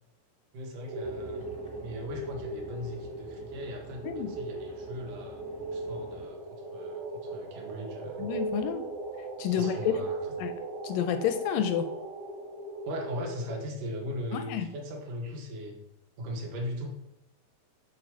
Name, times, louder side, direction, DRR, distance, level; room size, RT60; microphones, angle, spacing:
voice 1, 0.5-8.3 9.5-10.3 12.9-15.8 16.2-16.9, equal, 60° right, 0 dB, 3.0 m, -39 dB
sound 1, 0.9-13.6, right 2 dB, 80° right, 1.2 m, -38 dB
sound 2, 1.0-6.3, equal, 35° left, 0.4 m, -51 dB
voice 2, 8.2-8.9 9.4-9.9 10.4-10.5 10.8-11.9 14.3-14.7, left 9 dB, 80° left, 10 dB, 2.0 m, -29 dB
8.7 x 4.4 x 6.3 m, 0.85 s
omnidirectional pair, 4.3 m